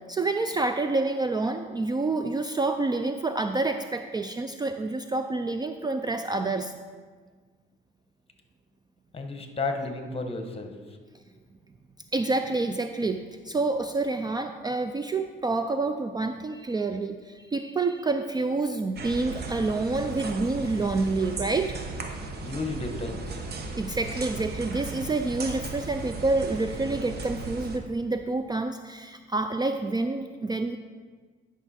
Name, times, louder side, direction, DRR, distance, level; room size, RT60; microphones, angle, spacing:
voice 1, 0.1-6.7 12.1-21.7 23.7-30.8, right 3 dB, 20° right, 7 dB, 0.4 m, -28 dB
voice 2, 9.1-10.8 22.4-23.4, left 3 dB, 30° left, 5 dB, 1.2 m, -33 dB
sound 1, 19.0-27.8, right 3 dB, 55° right, 1.0 m, -36 dB
10.5 x 6.0 x 4.3 m, 1.5 s
cardioid pair, 90°, 20 cm